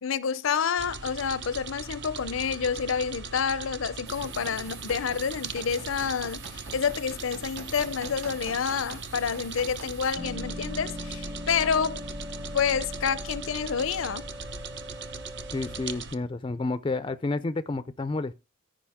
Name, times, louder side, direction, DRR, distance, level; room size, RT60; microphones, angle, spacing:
voice 1, 0.0-12.0 12.5-14.2, left 6 dB, 75° left, 0.5 m, -28 dB
sound 1, 0.8-16.2, right 5 dB, 60° right, 0.7 m, -40 dB
sound 2, 4.1-10.1, right 3 dB, 75° right, 2.1 m, -45 dB
sound 3, 10.2-16.0, left 1 dB, 15° right, 0.6 m, -39 dB
voice 2, 15.5-18.3, left 3 dB, 25° left, 0.4 m, -30 dB
14.5 x 5.1 x 3.6 m
head